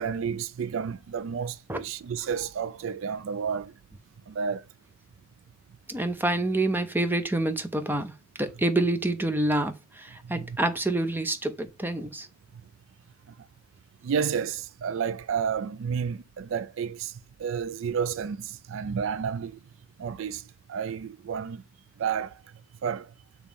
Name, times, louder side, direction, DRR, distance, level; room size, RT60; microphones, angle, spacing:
voice 1, 0.0-3.7 4.3-4.6 10.2-10.6 14.0-19.6 20.0-20.4 20.7-21.6 22.0-22.4 22.8-23.1, right 7 dB, 70° right, 0.4 m, -31 dB
voice 2, 5.9-8.1 8.4-12.3, right 2 dB, 10° right, 0.6 m, -27 dB
6.9 x 3.1 x 5.1 m
head